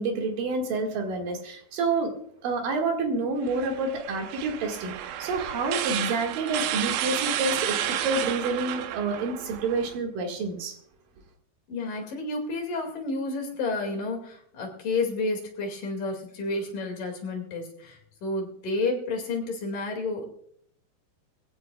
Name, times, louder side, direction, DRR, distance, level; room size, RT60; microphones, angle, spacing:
voice 1, 0.0-2.1 2.4-4.9 5.2-10.8, right 3 dB, 55° right, 3.2 m, -28 dB
sound 1, 3.5-10.0, right 11 dB, 80° right, 3.1 m, -31 dB
voice 2, 11.7-20.3, left 3 dB, 50° left, 3.5 m, -30 dB
22.5 x 16.0 x 2.4 m
omnidirectional pair, 5.2 m